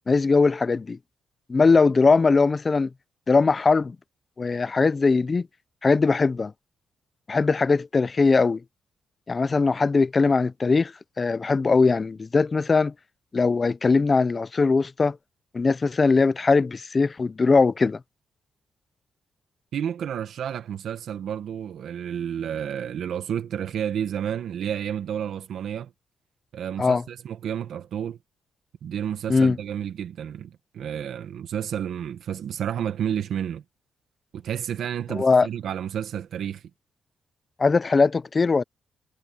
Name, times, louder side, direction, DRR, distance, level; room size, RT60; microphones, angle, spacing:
voice 1, 0.1-1.0 1.5-2.9 3.3-4.0 4.4-5.5 5.8-6.5 7.3-8.6 9.3-12.9 13.3-15.2 15.5-18.0 26.8-27.0 29.3-29.6 35.1-35.5 37.6-38.6, left 4 dB, 30° left, 0.5 m, -20 dB
voice 2, 19.7-25.9 26.5-28.2 28.8-33.6 34.3-36.6, right 9 dB, 70° right, 1.6 m, -31 dB
cardioid pair, 135°, 0 cm